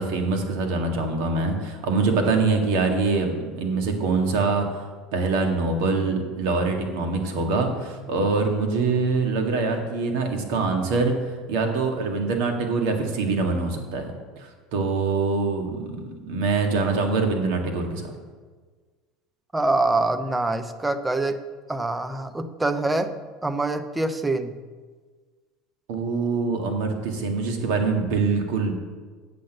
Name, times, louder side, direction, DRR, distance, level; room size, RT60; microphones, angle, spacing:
voice 1, 0.0-4.7 5.1-11.1 11.5-14.1 14.4-16.0 16.3-18.1 25.9-28.7, right 4 dB, 65° right, 4 dB, 1.9 m, -24 dB
voice 2, 19.5-21.4 21.7-23.1 23.4-24.6, right 2 dB, 10° right, 9 dB, 0.9 m, -25 dB
8.3 x 6.5 x 7.9 m, 1.4 s
hypercardioid pair, 75°, 0 cm